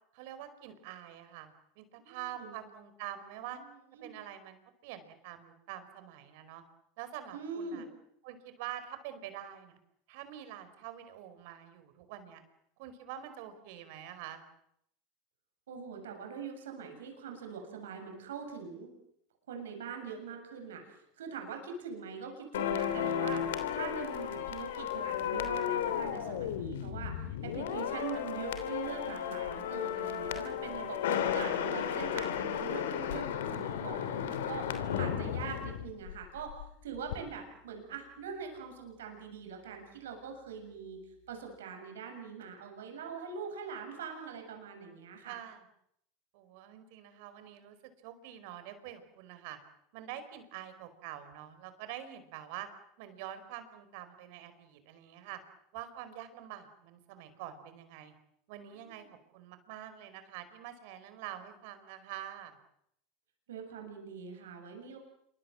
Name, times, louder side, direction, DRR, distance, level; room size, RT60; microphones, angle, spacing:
voice 1, 0.1-3.6 4.0-6.6 7.0-7.8 8.2-9.8 10.1-12.4 12.8-14.4 24.0-24.4 28.1-28.2 35.2-35.5 45.2-45.6 46.3-47.8 48.0-49.6 49.9-52.7 53.0-55.4 55.7-58.1 58.5-59.1 59.3-62.6, right 11 dB, 70° right, 11 dB, 5.0 m, -46 dB
voice 2, 2.0-2.5 4.0-4.1 7.3-7.9 15.7-18.9 19.5-41.0 41.3-45.4 58.8-59.1 63.5-65.0, right 6 dB, 85° right, 4 dB, 7.0 m, -43 dB
sound 1, 22.5-36.7 36.9-37.2, left 9 dB, 85° left, 3.1 m, -34 dB
28.0 x 24.5 x 7.8 m, 0.75 s
hypercardioid pair, 100°, 0 cm